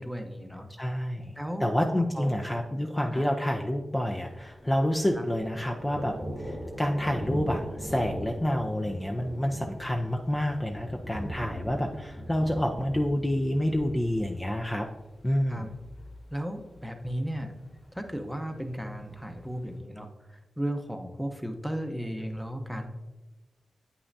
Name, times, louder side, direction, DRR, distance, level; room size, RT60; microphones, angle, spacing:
voice 1, 0.0-0.7 1.4-1.7 2.1-2.3 3.1-3.3 5.2-5.3 15.5-15.7 16.3-17.5 17.9-22.9, equal, ahead, 5 dB, 0.9 m, -35 dB
voice 2, 0.8-1.3 1.6-14.9 15.2-15.7, left 1 dB, 20° left, 2 dB, 0.6 m, -28 dB
Thunder, 4.2-19.8, equal, 50° left, 1.5 m, -41 dB
8.6 x 5.6 x 2.7 m, 1.1 s
cardioid pair, 60°, 0 cm